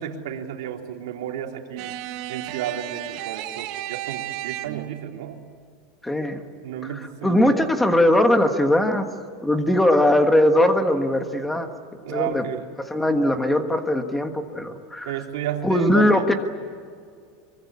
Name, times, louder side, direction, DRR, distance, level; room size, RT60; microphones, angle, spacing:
voice 1, 0.0-2.0 2.3-5.4 6.6-7.6 12.0-12.7 15.0-16.3, right 9 dB, 80° right, 2 dB, 3.4 m, -32 dB
sound 1, 1.8-5.0, right 15 dB, 45° right, 1.6 m, -33 dB
voice 2, 6.0-6.4 7.2-9.0 9.4-11.7 12.1-12.4 12.9-15.1 15.6-16.3, left 1 dB, 5° left, 6 dB, 1.5 m, -20 dB
24.5 x 24.0 x 8.4 m, 2.2 s
supercardioid pair, 175°, 2 cm